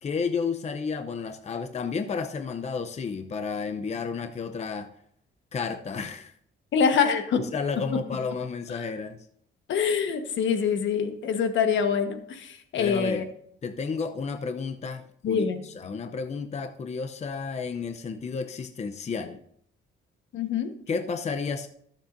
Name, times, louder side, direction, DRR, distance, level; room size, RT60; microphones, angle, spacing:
voice 1, 0.0-4.9 5.5-6.3 7.4-9.2 12.8-13.2 13.6-19.4 20.9-21.7, left 5 dB, 35° left, 8 dB, 0.6 m, -32 dB
voice 2, 6.7-7.4 9.7-13.2 15.2-15.6 20.3-20.7, left 6 dB, 70° left, 8 dB, 1.3 m, -25 dB
18.0 x 7.4 x 2.6 m, 0.69 s
cardioid pair, 90°, 20 cm